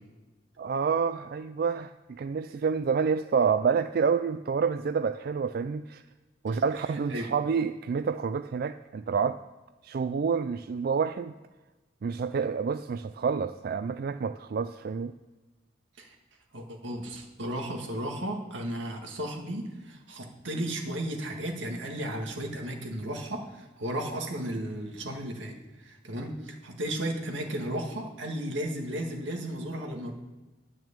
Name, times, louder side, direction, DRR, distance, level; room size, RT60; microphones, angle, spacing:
voice 1, 0.6-6.0 6.4-9.4 9.8-11.3 12.0-15.1, right 6 dB, 50° right, 11 dB, 0.3 m, -28 dB
voice 2, 16.5-30.1, right 1 dB, 85° right, 2 dB, 2.0 m, -34 dB
10.5 x 6.2 x 8.7 m, 1.2 s
head